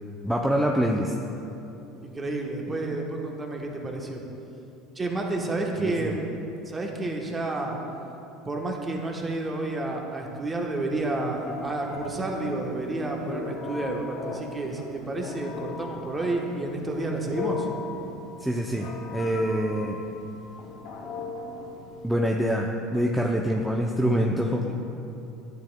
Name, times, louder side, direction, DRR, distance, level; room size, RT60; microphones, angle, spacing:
voice 1, 0.2-1.1 5.8-6.1 18.4-20.0 22.0-24.7, equal, 5° right, 0 dB, 0.5 m, -25 dB
voice 2, 2.0-4.2 4.9-6.3 6.6-7.8 8.5-17.7 24.6-24.7, right 2 dB, 20° right, 1 dB, 1.1 m, -30 dB
Telephone, 10.9-22.1, left 4 dB, 65° left, 1.0 m, -38 dB
10.0 x 7.2 x 2.2 m, 2.9 s
hypercardioid pair, 85°, 0 cm